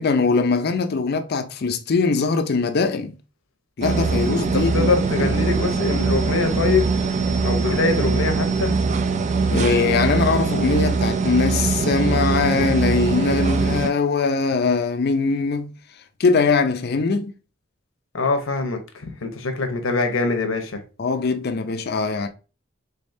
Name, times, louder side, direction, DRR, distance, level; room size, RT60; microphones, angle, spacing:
voice 1, 0.0-3.1 3.8-4.9 5.2-5.4 9.5-15.7 16.2-17.3 21.0-22.3, left 4 dB, 50° left, 0.5 m, -21 dB
sound 1, 3.8-13.9, right 4 dB, 35° right, 0.4 m, -22 dB
voice 2, 4.5-6.9 7.4-8.7 18.1-20.8, left 3 dB, 75° left, 0.9 m, -23 dB
3.9 x 3.4 x 2.6 m
head